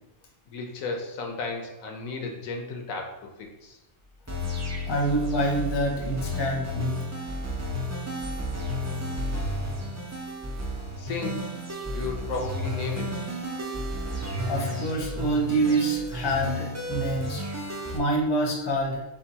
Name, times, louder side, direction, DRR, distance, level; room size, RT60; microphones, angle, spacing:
voice 1, 0.5-3.8 11.0-11.4 11.9-13.2, left 3 dB, 85° left, 2 dB, 1.1 m, -34 dB
sound 1, 4.3-18.0, left 1 dB, 25° right, 0.3 m, -32 dB
voice 2, 4.9-7.0 14.1-17.4 17.9-19.0, right 1 dB, 25° left, -1 dB, 0.6 m, -26 dB
4.4 x 3.7 x 2.8 m, 0.98 s
omnidirectional pair, 1.4 m